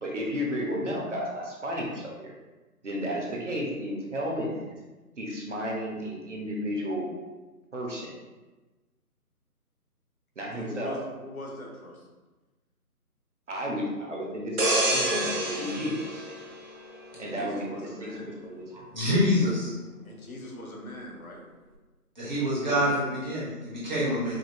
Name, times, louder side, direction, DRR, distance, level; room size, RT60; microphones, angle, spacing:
voice 1, 0.0-2.3 2.8-4.7 5.2-7.1 7.7-8.1 10.4-11.0 13.5-16.2 17.2-18.6 22.7-22.8, equal, 50° right, -2 dB, 0.9 m, -32 dB
voice 2, 10.5-12.0 17.1-18.3 20.0-21.5, left 1 dB, 65° left, 0 dB, 1.0 m, -41 dB
sound 1, 14.6-17.3 17.7-17.9, right 1 dB, 75° right, 1.0 m, -28 dB
voice 3, 18.7-19.7 22.2-24.4, equal, 30° right, -8 dB, 1.1 m, -26 dB
4.9 x 2.9 x 2.2 m, 1.2 s
figure-of-eight pair, 155°, 46 cm